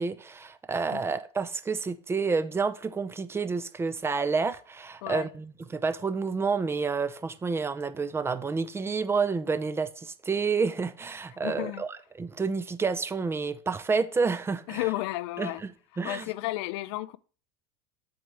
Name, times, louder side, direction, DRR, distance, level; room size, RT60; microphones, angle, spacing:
voice 1, 0.0-14.9 15.4-15.7 16.0-16.3, right 4 dB, 15° right, 0.5 m, -29 dB
voice 2, 11.4-11.8 14.7-15.6 16.0-17.2, left 18 dB, 65° left, 0.4 m, -32 dB
7.8 x 5.2 x 3.4 m
hypercardioid pair, 100°, 15 cm